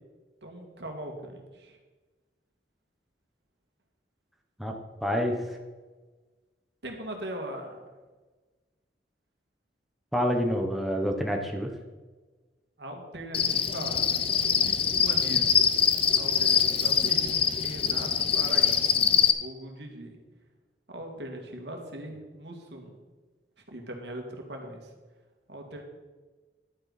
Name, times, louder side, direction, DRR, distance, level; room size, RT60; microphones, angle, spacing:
voice 1, 0.4-1.8 6.8-7.8 12.8-15.7 16.1-17.3 17.6-20.2 20.9-23.0 23.7-24.9 25.5-25.8, right 1 dB, 80° right, 3 dB, 2.0 m, -40 dB
voice 2, 5.0-5.4 10.1-11.7, equal, ahead, 1 dB, 1.0 m, -27 dB
Cricket, 13.3-19.3, left 8 dB, 30° left, 0.6 m, -24 dB
11.0 x 9.6 x 4.1 m, 1.3 s
head